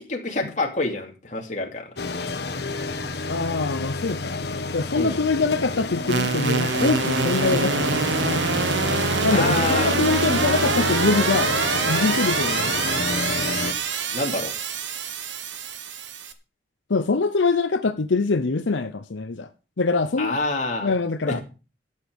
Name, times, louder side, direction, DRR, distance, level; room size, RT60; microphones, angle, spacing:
voice 1, 0.1-1.9 5.0-5.2 9.3-9.9 14.1-14.5 20.2-20.9 21.3-21.4, left 2 dB, 40° left, 2.6 m, -27 dB
sound 1, 2.0-13.7, left 3 dB, 60° left, 1.3 m, -29 dB
voice 2, 3.3-4.4 4.7-8.4 9.2-11.5 11.9-12.9 16.9-19.5 19.8-20.4 20.8-21.4, left 4 dB, 90° left, 0.7 m, -24 dB
sound 2, 6.1-16.3, right 4 dB, 85° right, 1.3 m, -25 dB
13.0 x 8.3 x 5.2 m
head